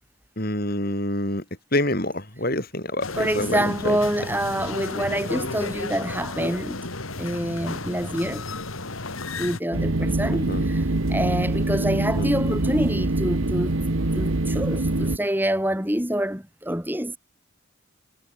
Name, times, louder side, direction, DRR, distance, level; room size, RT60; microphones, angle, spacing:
voice 1, 0.4-1.4 1.7-4.0 10.3-10.7 12.2-12.3, left 1 dB, 45° left, 6.1 m, -27 dB
sound 1, 3.0-9.6, left 3 dB, 80° left, 3.7 m, -33 dB
voice 2, 3.2-6.8 7.2-8.5 9.4-13.7 14.1-17.2, right 1 dB, 10° right, 3.9 m, -26 dB
sound 2, 9.7-15.2, right 2 dB, 75° right, 1.4 m, -24 dB
head